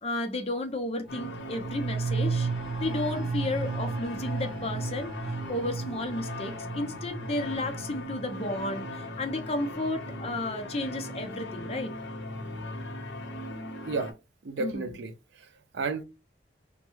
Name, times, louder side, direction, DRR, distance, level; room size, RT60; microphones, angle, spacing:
voice 1, 0.0-2.5 2.8-5.2 5.5-11.9 14.6-14.9, left 2 dB, 35° left, 0.5 m, -33 dB
sound 1, 1.0-10.5 10.8-10.9, right 4 dB, ahead, 1.1 m, -35 dB
sound 2, 1.1-14.1, left 1 dB, 80° left, 0.8 m, -39 dB
voice 2, 14.4-15.5 15.7-16.0, right 3 dB, 70° right, 0.5 m, -32 dB
3.1 x 2.2 x 3.1 m
head